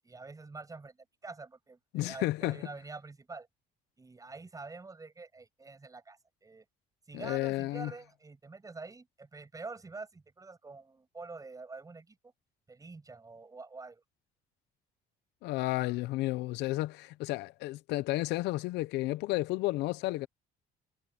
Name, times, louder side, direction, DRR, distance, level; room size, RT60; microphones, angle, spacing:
voice 1, 0.0-3.5 4.0-6.6 7.1-12.2 12.7-14.0, right 3 dB, 20° right, 7.7 m, -46 dB
voice 2, 1.9-2.6 7.1-7.9 15.4-20.3, left 18 dB, 90° left, 0.7 m, -32 dB
cardioid pair, 110°, 17 cm